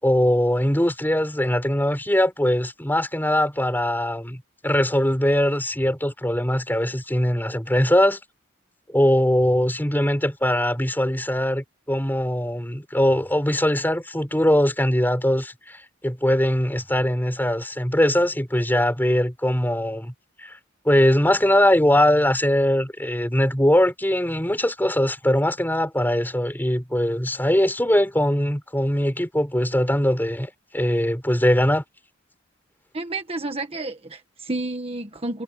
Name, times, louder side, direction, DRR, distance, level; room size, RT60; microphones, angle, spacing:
voice 1, 0.0-8.2 8.9-20.1 20.4-20.6 20.8-31.8, left 1 dB, 10° left, 5.7 m, -21 dB
voice 2, 32.9-35.4, right 2 dB, 30° right, 1.5 m, -30 dB
head